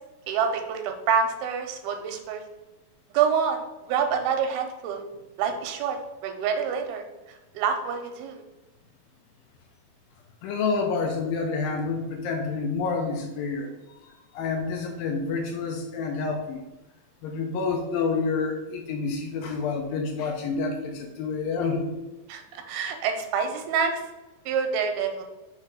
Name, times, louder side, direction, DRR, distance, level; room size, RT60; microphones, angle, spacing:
voice 1, 0.3-2.4 3.1-3.6 3.9-5.0 5.4-7.0 7.6-8.4 22.3-23.9 24.5-25.2, right 6 dB, 85° right, 5 dB, 2.5 m, -27 dB
voice 2, 10.4-13.7 14.1-16.6 17.2-21.9, left 4 dB, 80° left, 2 dB, 2.2 m, -28 dB
6.6 x 3.2 x 5.0 m, 1.1 s
omnidirectional pair, 4.5 m